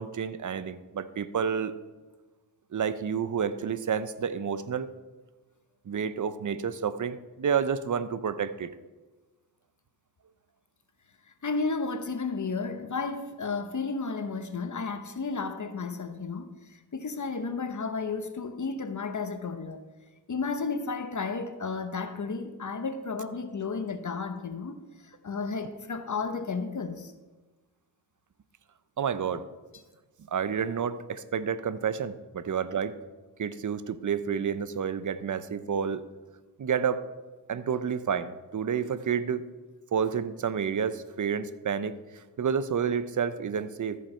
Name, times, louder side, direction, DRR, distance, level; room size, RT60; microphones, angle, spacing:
voice 1, 0.0-1.7 2.7-4.9 5.9-8.7 29.0-29.5 30.3-33.0 33.4-36.0 36.6-37.0 37.5-39.4 39.9-44.0, right 7 dB, 50° right, 0.7 m, -30 dB
voice 2, 11.4-19.8 20.3-27.1, left 4 dB, 45° left, 0.9 m, -33 dB
14.0 x 5.3 x 4.3 m
cardioid pair, 60°, 41 cm